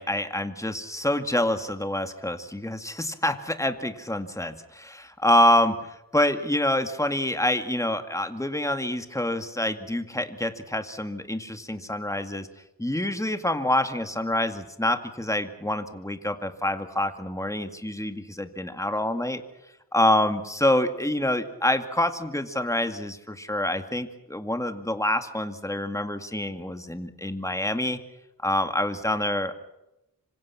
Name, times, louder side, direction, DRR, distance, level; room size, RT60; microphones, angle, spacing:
voice 1, 0.0-12.5 12.8-19.4 19.9-28.0 28.4-29.5, left 1 dB, 10° left, 7 dB, 2.1 m, -26 dB
26.5 x 25.5 x 6.0 m, 0.90 s
wide cardioid pair, 75°, 37 cm